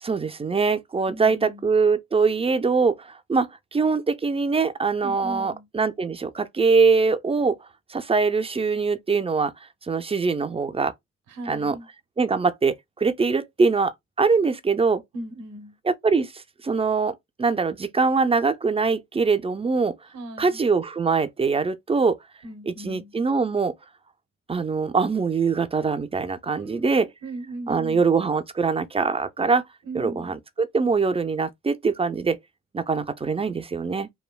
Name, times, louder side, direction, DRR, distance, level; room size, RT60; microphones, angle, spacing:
voice 1, 0.0-7.6 7.9-9.5 9.9-10.9 11.5-11.8 12.2-15.0 15.9-20.0 20.4-22.2 22.7-23.7 24.5-27.1 27.7-29.6 29.9-32.4 32.7-34.1, right 4 dB, 20° right, 0.3 m, -23 dB
voice 2, 1.1-1.7 5.0-5.7 11.3-11.9 15.1-15.8 20.1-20.6 22.4-23.1 26.5-28.1 29.9-30.4, right 1 dB, 90° right, 0.9 m, -38 dB
3.2 x 2.1 x 2.2 m
cardioid pair, 70°, 33 cm